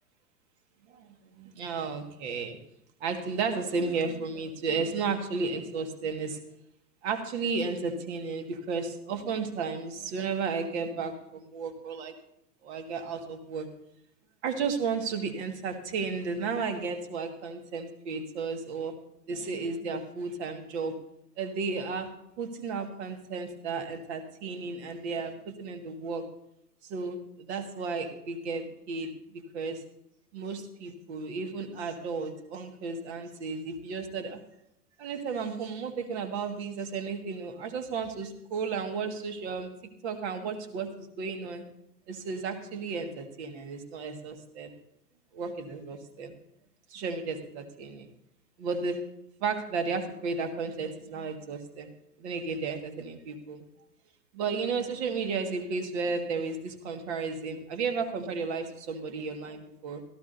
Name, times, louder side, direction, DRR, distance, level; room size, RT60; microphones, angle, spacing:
voice 1, 0.9-2.6 3.0-6.4 7.0-12.1 12.6-13.7 14.4-18.9 19.3-21.0 21.4-22.1 22.4-26.2 26.8-29.8 30.3-34.4 35.0-39.7 40.0-41.6 42.1-44.8 45.3-46.3 46.9-48.1 48.6-49.0 49.4-51.9 52.2-53.6 54.3-60.0, right 4 dB, 45° right, 6 dB, 1.9 m, -33 dB
17.5 x 13.5 x 2.7 m, 0.78 s
figure-of-eight pair, 105°, 47 cm